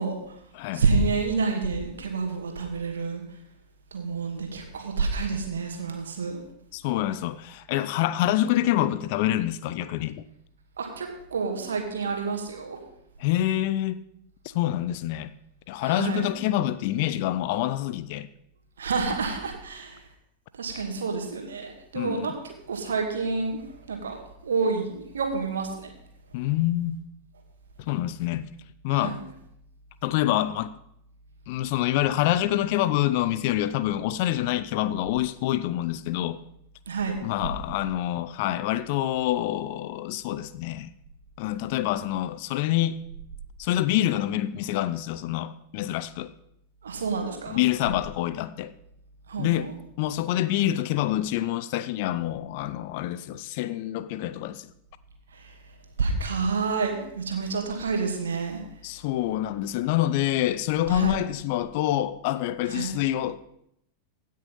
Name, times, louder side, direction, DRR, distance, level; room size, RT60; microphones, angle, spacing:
voice 1, 0.0-0.4 0.7-3.4 3.9-6.4 10.8-12.8 15.8-16.3 18.8-20.1 20.5-25.9 28.9-29.2 36.9-37.2 46.8-47.6 49.3-49.7 55.3-55.6 56.0-58.6 60.9-61.3 62.7-62.9, right 4 dB, 65° right, 2.3 m, -29 dB
voice 2, 6.7-10.2 13.2-14.0 14.4-15.3 15.7-18.3 21.9-22.3 26.3-27.0 27.8-28.5 28.8-29.2 30.0-30.8 31.5-36.4 37.2-40.9 41.4-43.0 43.6-46.3 47.5-48.7 49.4-49.7 50.0-54.7 58.8-63.4, left 13 dB, 50° left, 0.6 m, -26 dB
16.5 x 6.5 x 5.6 m
figure-of-eight pair, 90°, 0 cm